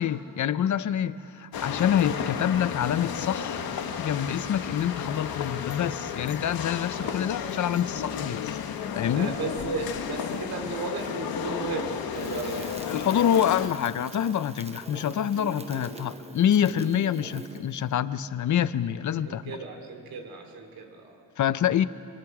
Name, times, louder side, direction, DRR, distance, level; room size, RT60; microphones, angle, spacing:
voice 1, 0.0-3.7 4.0-8.6 9.0-9.4 12.9-19.6 21.4-21.9, left 9 dB, 55° left, 0.7 m, -26 dB
sound 1, 1.5-13.7, left 7 dB, 85° left, 1.5 m, -33 dB
voice 2, 9.1-12.7 15.3-16.0 16.7-17.0 19.3-21.2, right 4 dB, 85° right, 3.1 m, -35 dB
Crackle, 12.1-17.8, right 3 dB, 20° right, 1.0 m, -45 dB
27.5 x 25.5 x 4.9 m
wide cardioid pair, 140°, 35 cm